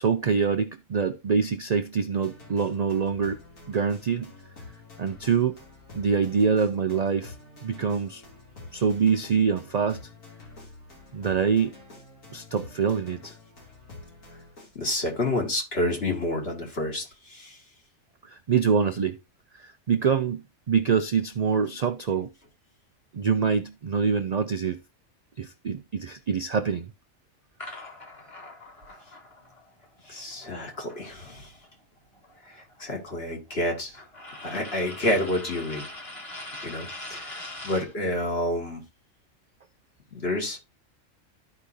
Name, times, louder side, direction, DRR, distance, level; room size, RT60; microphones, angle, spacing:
voice 1, 0.0-3.4 3.7-4.3 5.0-5.6 5.9-7.3 7.6-8.2 8.7-10.0 11.1-11.7 12.3-13.3 18.2-19.2 19.5-22.3 23.1-24.8 25.4-26.9 30.1-30.3, right 6 dB, 80° right, 0.3 m, -25 dB
sound 1, 2.1-14.9, left 3 dB, 80° left, 3.0 m, -48 dB
voice 2, 14.8-17.6 30.1-31.5 32.5-34.0 34.4-35.9 36.6-38.8 40.1-40.6, left 1 dB, 50° left, 2.1 m, -29 dB
sound 2, 27.6-31.7 32.0-37.9, left 1 dB, 25° left, 1.6 m, -42 dB
13.5 x 4.9 x 2.7 m
omnidirectional pair, 1.4 m